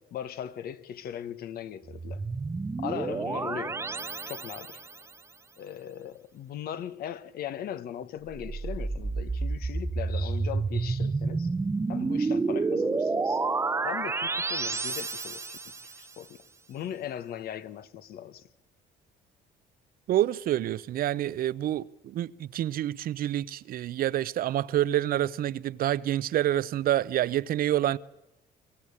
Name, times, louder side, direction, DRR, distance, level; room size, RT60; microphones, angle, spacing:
voice 1, 0.0-2.2 2.8-3.8 4.3-4.8 5.6-11.5 11.9-13.4 13.8-15.6 16.0-16.4 16.7-18.5, left 10 dB, 65° left, 1.3 m, -39 dB
sound 1, 1.9-5.0 8.3-16.0, right 3 dB, 15° right, 0.7 m, -30 dB
voice 2, 20.1-28.0, right 12 dB, 60° right, 0.7 m, -27 dB
23.5 x 15.5 x 8.6 m
cardioid pair, 110°, 17 cm